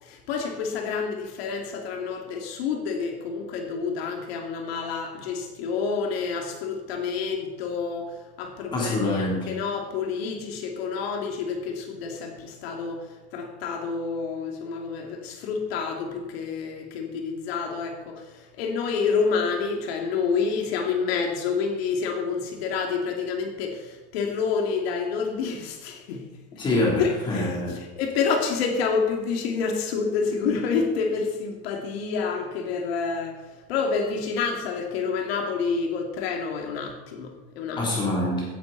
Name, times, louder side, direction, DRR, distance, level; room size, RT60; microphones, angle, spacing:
voice 1, 0.0-13.0 13.3-26.3 27.0-27.6 28.0-33.4 33.7-37.8, left 5 dB, 70° left, 2 dB, 2.7 m, -28 dB
voice 2, 8.7-9.5 26.6-27.8 37.8-38.4, left 2 dB, 15° left, -4 dB, 3.5 m, -25 dB
16.5 x 10.5 x 4.2 m, 1.2 s
supercardioid pair, 175°, 32 cm